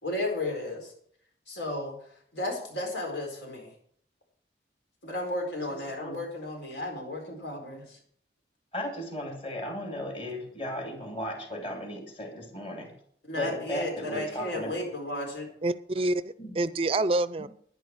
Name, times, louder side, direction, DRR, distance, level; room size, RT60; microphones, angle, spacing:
voice 1, 0.0-0.9 1.5-3.7 5.0-8.0 13.2-15.5, left 1 dB, 90° left, 1 dB, 4.5 m, -34 dB
voice 2, 5.7-6.2 8.7-12.9 13.3-14.7 16.4-16.6, left 1 dB, 30° left, 2 dB, 2.5 m, -36 dB
voice 3, 15.6-17.5, right 2 dB, 30° right, 15 dB, 0.4 m, -27 dB
10.5 x 10.5 x 6.1 m, 0.63 s
head